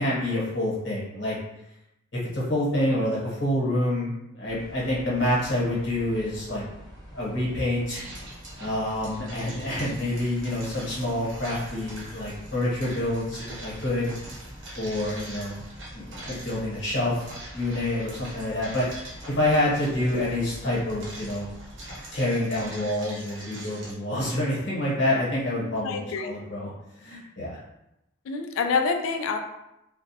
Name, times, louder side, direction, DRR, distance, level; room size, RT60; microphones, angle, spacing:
voice 1, 0.0-1.3 2.1-6.6 7.1-8.0 8.6-14.1 14.8-15.6 15.9-17.2 17.5-21.5 22.1-26.7 27.0-27.6, left 1 dB, 60° left, -6 dB, 1.0 m, -27 dB
sound 1, 4.4-22.0, equal, 20° right, 0.7 m, -45 dB
sound 2, 7.9-23.9, right 1 dB, 60° right, 0.7 m, -44 dB
voice 2, 25.8-26.3 28.3-29.4, left 5 dB, 75° left, 6 dB, 0.3 m, -26 dB
2.3 x 2.0 x 2.7 m, 0.88 s
head